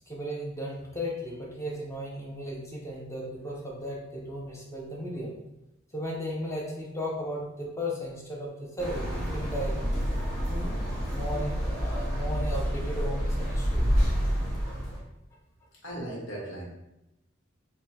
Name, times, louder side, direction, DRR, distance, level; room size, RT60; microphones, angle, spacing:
voice 1, 0.1-5.3 5.9-9.8 10.5-13.8, equal, 15° left, -3 dB, 0.7 m, -35 dB
sound 1, 8.8-15.0, equal, 55° left, 1.2 m, -28 dB
voice 2, 15.8-16.6, right 1 dB, 70° left, -4 dB, 1.2 m, -37 dB
3.6 x 2.2 x 4.2 m, 0.90 s
head